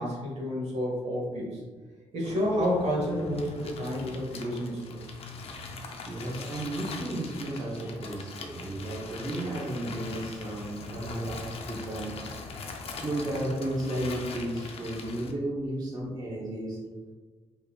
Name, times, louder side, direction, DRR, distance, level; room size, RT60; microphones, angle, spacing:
voice 1, 0.0-1.6 2.1-5.0, equal, 70° right, -3 dB, 1.1 m, -30 dB
sound 1, 2.2-15.3, left 4 dB, 60° left, 0.5 m, -41 dB
voice 2, 6.0-12.1 13.0-16.8, right 1 dB, 35° right, -5 dB, 0.7 m, -33 dB
3.7 x 2.8 x 2.3 m, 1.4 s
cardioid pair, 85°, 11 cm